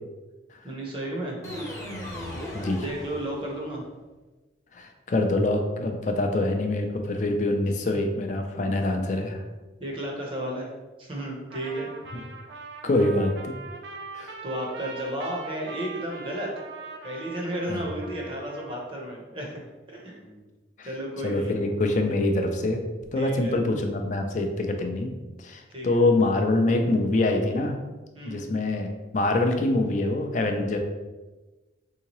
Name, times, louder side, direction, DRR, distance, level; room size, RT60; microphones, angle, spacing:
voice 1, 0.6-1.4 2.8-3.9 7.9-8.0 9.8-10.7 11.0-11.9 14.4-16.5 17.0-19.6 19.9-20.4 20.8-21.5 23.2-23.5 25.7-26.0 28.1-28.5, right 1 dB, 30° right, -2 dB, 0.7 m, -33 dB
sound 1, 1.4-3.7, equal, 15° left, 0.7 m, -37 dB
voice 2, 4.7-9.4 12.1-12.2 12.8-13.5 14.1-14.3 17.7-17.9 20.8-20.9 21.2-22.8 23.1-25.1 25.4-27.7 28.3-30.8, left 2 dB, 45° left, 4 dB, 0.4 m, -25 dB
Trumpet, 11.5-18.9, right 4 dB, 75° right, 0.4 m, -41 dB
3.6 x 2.8 x 2.9 m, 1.2 s
head